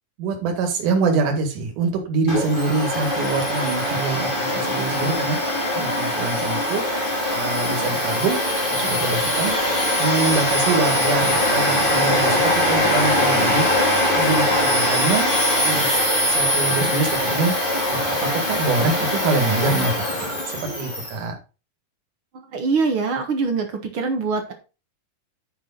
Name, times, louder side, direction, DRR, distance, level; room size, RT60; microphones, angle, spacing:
voice 1, 0.2-5.4 5.7-6.8 7.3-8.4 8.7-9.5 10.0-13.7 14.1-15.3 15.6-16.0 16.3-17.5 17.9-21.3, right 4 dB, 65° right, 4 dB, 3.3 m, -24 dB
Domestic sounds home sounds, 2.3-21.1, left 1 dB, 15° left, 2.3 m, -22 dB
voice 2, 22.3-24.5, right 4 dB, 50° right, 5 dB, 1.7 m, -24 dB
9.7 x 6.2 x 4.0 m, 0.31 s
omnidirectional pair, 4.0 m